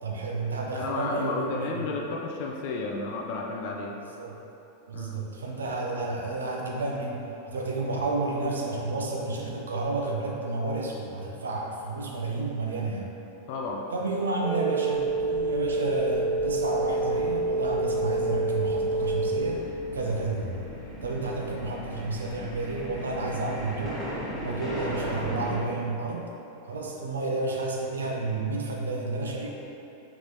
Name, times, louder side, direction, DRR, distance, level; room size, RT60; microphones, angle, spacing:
voice 1, 0.0-1.8 4.0-4.4 4.9-13.1 13.9-19.6 19.9-20.7 21.0-24.0 24.3-26.3 26.7-29.5, right 3 dB, 70° right, -1 dB, 0.6 m, -31 dB
voice 2, 0.7-4.0 4.9-5.2 13.5-13.9, left 3 dB, 45° left, 0 dB, 0.4 m, -32 dB
sound 1, 14.4-19.4, right 2 dB, 25° right, 0.6 m, -27 dB
sound 2, 14.9-25.6, equal, 15° left, 1.1 m, -38 dB
4.7 x 3.9 x 2.6 m, 2.9 s
figure-of-eight pair, 90°, 0 cm